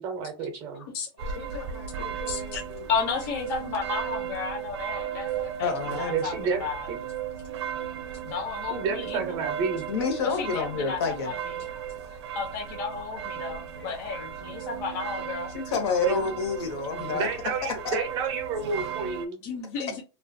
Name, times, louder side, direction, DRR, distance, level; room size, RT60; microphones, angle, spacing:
voice 1, 0.0-0.8 6.1-7.0 8.7-9.9 16.0-16.3 17.1-19.4, right 5 dB, 35° right, 0.5 m, -30 dB
voice 2, 0.7-2.9 5.3-5.8 6.1-6.7 7.6-7.8 8.1-8.8 9.9-10.3 11.6-12.4 13.4-13.5 13.8-14.5 16.2-16.3, left 6 dB, 85° left, 1.2 m, -47 dB
sound 1, 1.2-19.3, right 8 dB, 90° right, 0.4 m, -36 dB
voice 3, 2.3-2.6 2.9-6.3 6.6-6.9 8.2-9.4 10.2-11.6 12.3-15.5 19.4-20.0, left 5 dB, 45° left, 0.5 m, -33 dB
voice 4, 5.6-6.2 9.9-11.3 14.1-14.3 15.5-17.3 17.8-18.0, left 5 dB, 70° left, 0.8 m, -28 dB
2.3 x 2.1 x 2.5 m
supercardioid pair, 160°, 14 cm